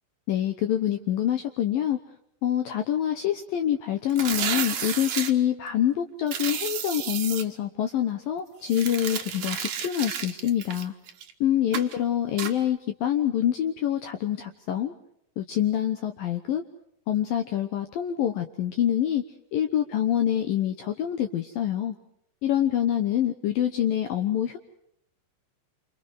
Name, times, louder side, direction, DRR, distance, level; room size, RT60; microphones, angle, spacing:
voice 1, 0.3-2.0 2.4-10.9 11.4-14.9 15.4-16.6 17.1-19.2 19.5-22.0 22.4-24.6, left 11 dB, 85° left, 6 dB, 2.0 m, -26 dB
sound 1, 4.1-5.3 6.3-7.4 8.6-11.3 11.7-12.0 12.4-12.5, right 8 dB, 60° right, 2.0 m, -32 dB
28.5 x 28.0 x 4.8 m, 0.75 s
omnidirectional pair, 5.9 m